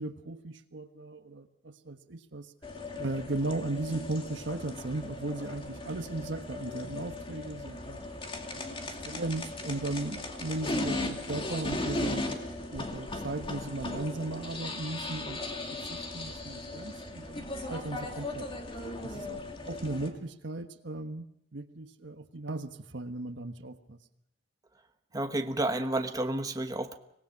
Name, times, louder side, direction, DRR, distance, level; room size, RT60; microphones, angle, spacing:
voice 1, 0.0-2.5 3.0-8.0 8.5-8.8 9.0-12.2 12.7-15.4 15.8-18.5 19.0-21.2 21.5-24.0, right 2 dB, 80° right, 8 dB, 1.4 m, -36 dB
sound 1, 2.6-20.1, left 2 dB, 30° left, 2.5 m, -37 dB
voice 2, 25.1-27.0, right 1 dB, 20° right, 6 dB, 1.1 m, -30 dB
25.0 x 19.0 x 5.9 m, 0.76 s
head